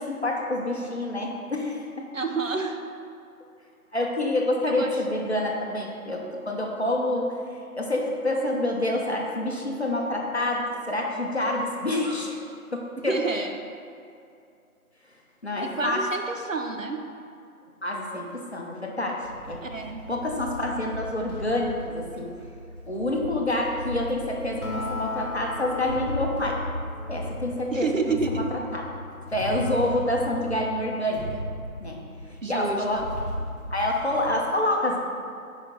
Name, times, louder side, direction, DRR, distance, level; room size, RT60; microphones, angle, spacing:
voice 1, 0.0-2.1 3.9-7.3 7.8-12.4 12.7-13.2 15.4-16.0 17.8-19.6 20.1-22.4 22.9-26.6 27.1-28.8 29.3-31.3 31.8-32.0 32.5-33.0 33.7-35.0, left 1 dB, 45° left, 0 dB, 0.7 m, -27 dB
voice 2, 2.1-2.8 4.6-5.0 13.0-13.5 15.6-17.0 19.6-20.0 27.7-28.5 32.4-33.1, right 4 dB, 60° right, 4 dB, 0.6 m, -29 dB
sound 1, 19.2-34.3, left 1 dB, 30° left, 1.1 m, -37 dB
Acoustic guitar, 24.6-28.2, left 3 dB, 80° left, 1.0 m, -37 dB
5.0 x 4.1 x 5.3 m, 2.5 s
figure-of-eight pair, 170°, 44 cm